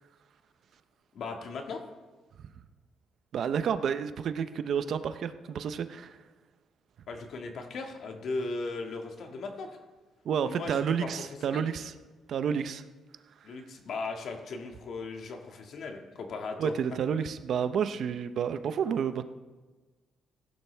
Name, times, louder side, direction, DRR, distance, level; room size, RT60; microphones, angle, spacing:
voice 1, 1.1-1.8 7.1-9.8 10.4-11.7 13.4-16.7, left 3 dB, 65° left, 3 dB, 1.9 m, -37 dB
voice 2, 3.3-6.1 10.2-11.9 12.3-12.8 16.6-19.2, right 7 dB, 65° right, 11 dB, 0.7 m, -30 dB
16.0 x 10.5 x 3.4 m, 1.3 s
cardioid pair, 90°, 0 cm